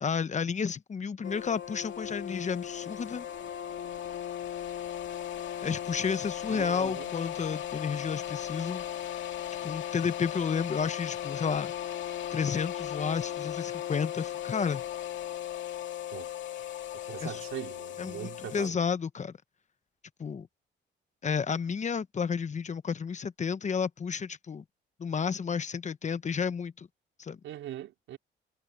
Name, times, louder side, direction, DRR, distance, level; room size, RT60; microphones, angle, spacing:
voice 1, 0.0-3.3 5.6-8.8 9.6-11.7 12.3-14.8 17.2-17.4 18.0-19.4 20.2-20.5 21.2-24.6 25.0-26.9 27.2-27.4, left 6 dB, 35° left, 1.0 m, -31 dB
sound 1, 1.2-18.7, left 10 dB, 70° left, 2.5 m, -37 dB
voice 2, 6.5-7.1 16.1-16.3 17.1-18.8 27.4-28.2, right 12 dB, 85° right, 4.2 m, -41 dB
cardioid pair, 90°, 20 cm